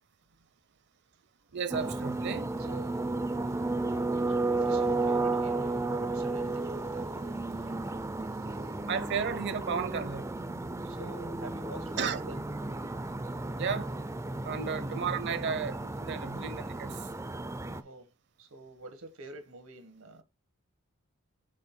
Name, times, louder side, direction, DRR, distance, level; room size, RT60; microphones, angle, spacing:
voice 1, 1.5-2.6 8.9-10.4 12.0-12.2 13.6-13.9 14.4-17.1, right 6 dB, 55° right, 0.7 m, -33 dB
sound 1, 1.7-17.8, right 2 dB, 15° right, 0.4 m, -33 dB
voice 2, 2.6-3.4 3.8-7.7 8.2-8.8 10.8-12.4 17.7-18.1 18.4-20.2, right 1 dB, 90° right, 1.7 m, -48 dB
6.3 x 4.3 x 4.4 m
head